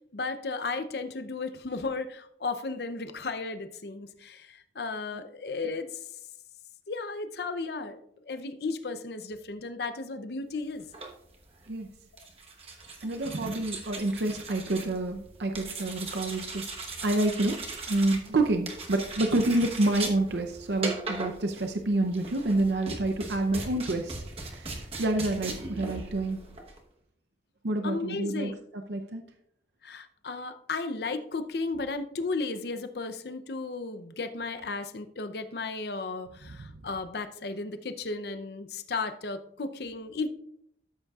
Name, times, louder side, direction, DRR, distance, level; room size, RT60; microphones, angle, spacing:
voice 1, 0.1-6.0 6.9-10.8 12.2-12.3 27.8-28.6 29.8-40.3, left 3 dB, 60° left, 10 dB, 0.6 m, -34 dB
sound 1, 10.8-26.8, right 3 dB, 30° right, 1.1 m, -39 dB
voice 2, 13.0-16.7 17.0-17.6 17.9-26.4 27.6-29.2 36.6-36.7, right 2 dB, 70° right, 5 dB, 0.6 m, -28 dB
13.0 x 8.0 x 2.4 m, 0.74 s
head